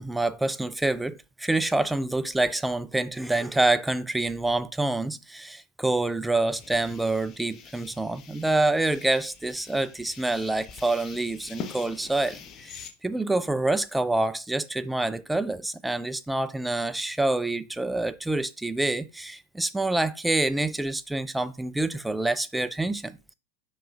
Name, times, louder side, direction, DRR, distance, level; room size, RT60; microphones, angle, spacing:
voice 1, 0.0-23.3, right 2 dB, 5° right, 0.3 m, -27 dB
sound 1, 6.5-12.9, left 6 dB, 30° left, 0.7 m, -44 dB
4.8 x 4.6 x 2.4 m
figure-of-eight pair, 90°, 0 cm